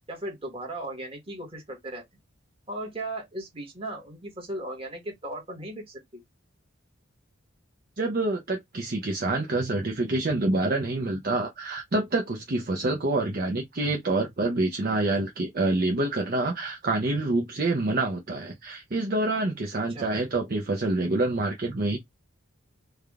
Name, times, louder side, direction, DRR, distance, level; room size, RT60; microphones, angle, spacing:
voice 1, 0.1-2.0 2.7-6.2 19.8-20.1, right 1 dB, 25° right, 1.3 m, -37 dB
voice 2, 8.0-22.0, right 2 dB, 45° right, 0.6 m, -27 dB
3.4 x 2.2 x 3.5 m
head